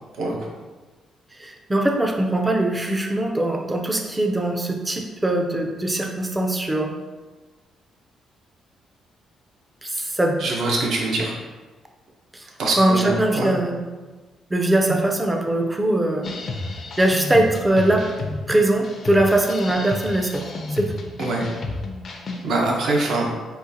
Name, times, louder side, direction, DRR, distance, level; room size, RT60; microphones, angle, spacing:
voice 1, 0.1-0.5 10.4-11.3 12.6-13.5 14.9-15.0 21.2-21.4 22.4-23.3, right 2 dB, 70° right, -2 dB, 0.8 m, -23 dB
voice 2, 1.3-6.9 9.8-10.4 12.3-12.5 12.8-13.8 14.5-16.3 17.0-18.1 18.5-20.4 20.7-20.9, right 1 dB, 15° right, 3 dB, 0.4 m, -21 dB
sound 1, 16.2-22.5, left 3 dB, 50° left, 0.4 m, -32 dB
3.8 x 2.4 x 2.7 m, 1.3 s
cardioid pair, 90°, 0 cm